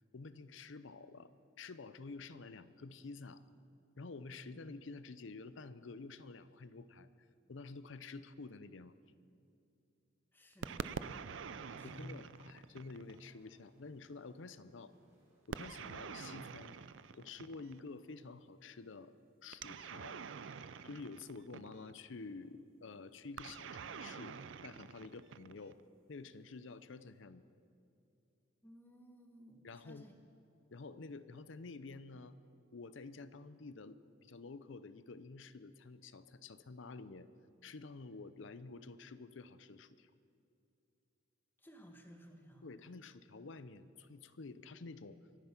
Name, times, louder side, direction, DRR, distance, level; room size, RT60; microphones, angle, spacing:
voice 1, 0.1-1.3 1.6-3.4 4.0-8.9 11.8-14.9 15.5-16.8 17.1-19.1 19.4-20.2 20.8-25.8 26.1-27.4 29.6-30.0 30.7-32.4 32.7-37.3 37.6-40.1 42.6-45.2, left 3 dB, 70° left, 14 dB, 0.6 m, -50 dB
voice 2, 10.3-11.3 11.8-12.2 28.6-30.1 41.6-42.7, equal, 10° left, 4 dB, 1.3 m, -55 dB
sound 1, 10.6-13.3 15.5-17.9 19.5-22.0 23.4-25.8, right 6 dB, 65° right, 0.5 m, -46 dB
sound 2, 12.3-18.1, right 1 dB, 15° right, 4.4 m, -75 dB
24.0 x 9.2 x 6.0 m, 2.6 s
head